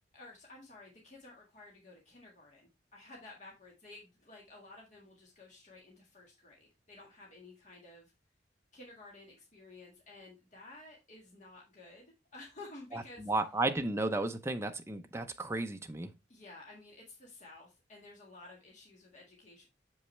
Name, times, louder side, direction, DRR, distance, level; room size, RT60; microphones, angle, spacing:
voice 1, 0.1-8.1 8.7-13.3 16.3-19.7, left 2 dB, 40° left, 1.6 m, -53 dB
voice 2, 12.9-16.1, right 2 dB, 15° right, 0.6 m, -34 dB
7.1 x 5.3 x 3.2 m
head